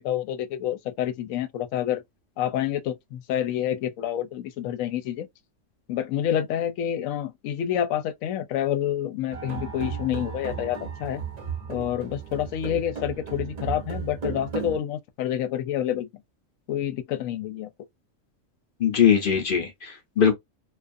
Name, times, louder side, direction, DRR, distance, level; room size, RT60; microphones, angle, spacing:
voice 1, 0.0-2.0 2.4-5.3 5.9-11.2 11.7-16.1 16.7-17.7, left 10 dB, 80° left, 1.0 m, -28 dB
sound 1, 9.3-14.8, right 6 dB, 40° right, 0.6 m, -34 dB
voice 2, 18.8-20.4, left 8 dB, 50° left, 0.7 m, -21 dB
2.4 x 2.4 x 2.5 m
omnidirectional pair, 1.4 m